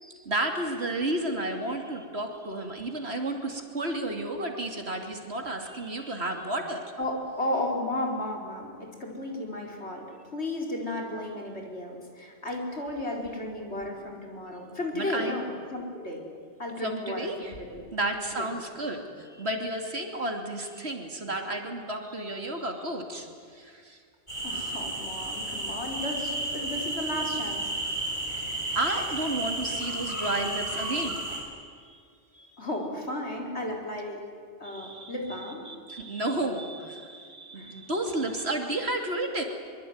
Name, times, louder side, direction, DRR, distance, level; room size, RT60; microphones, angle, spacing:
voice 1, 0.0-6.8 14.9-15.3 16.8-17.5 17.9-23.3 23.5-24.0 28.7-31.2 31.8-32.0 32.3-32.5 34.6-35.1 35.7-39.4, right 1 dB, 65° right, 4 dB, 3.2 m, -32 dB
voice 2, 7.0-10.1 10.3-16.2 16.6-17.8 18.3-18.5 24.4-28.0 32.6-34.2 34.6-35.7 37.5-37.7, left 1 dB, 70° left, 0 dB, 4.8 m, -34 dB
sound 1, 24.3-31.4, right 2 dB, 40° left, 6.6 m, -32 dB
24.0 x 23.0 x 9.6 m, 2.1 s
omnidirectional pair, 1.2 m